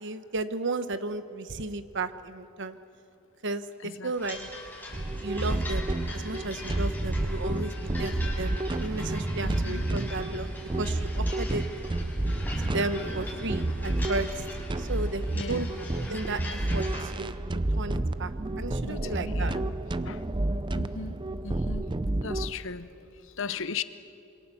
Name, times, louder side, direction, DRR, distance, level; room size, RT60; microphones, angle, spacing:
voice 1, 0.0-2.8 3.4-4.4 5.2-7.7 8.0-10.5 10.8-11.6 12.6-14.5 14.8-15.7 16.1-19.5, right 2 dB, 60° right, 12 dB, 1.1 m, -34 dB
sound 1, 4.1-17.0, left 2 dB, 10° left, 5.3 m, -42 dB
sound 2, 4.9-22.5, right 2 dB, 25° right, 0.6 m, -30 dB
voice 2, 9.4-9.8 15.3-15.8 18.8-19.7 20.0-20.3 20.7-21.1 21.4-21.9 22.2-23.8, left 5 dB, 65° left, 14 dB, 0.9 m, -37 dB
27.0 x 24.0 x 7.1 m, 2.9 s
head